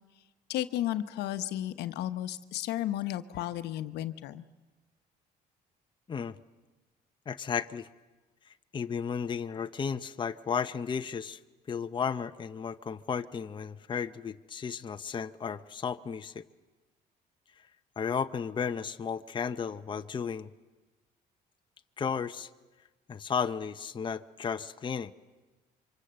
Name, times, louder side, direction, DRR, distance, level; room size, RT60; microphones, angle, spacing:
voice 1, 0.5-4.4, left 13 dB, 80° left, 10 dB, 1.1 m, -33 dB
voice 2, 7.3-7.9 8.7-11.4 11.7-16.4 18.0-20.5 22.0-22.5 23.1-25.1, left 6 dB, 30° left, 8 dB, 0.8 m, -34 dB
26.5 x 25.0 x 7.7 m, 1.2 s
cardioid pair, 110°, 17 cm